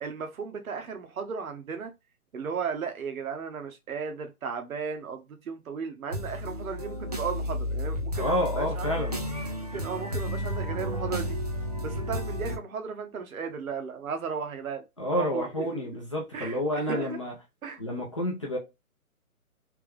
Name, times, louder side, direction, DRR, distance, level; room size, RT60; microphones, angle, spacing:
voice 1, 0.0-1.9 2.3-9.0 9.7-11.4 11.8-15.5 15.7-15.8 16.3-17.2 17.6-17.8, right 5 dB, 65° right, 0.9 m, -35 dB
sound 1, 6.1-12.6, equal, 30° right, 0.4 m, -32 dB
voice 2, 8.2-9.2 15.0-17.3 17.8-18.6, left 1 dB, 20° left, 0.5 m, -29 dB
3.4 x 2.9 x 3.3 m
figure-of-eight pair, 140°, 45 cm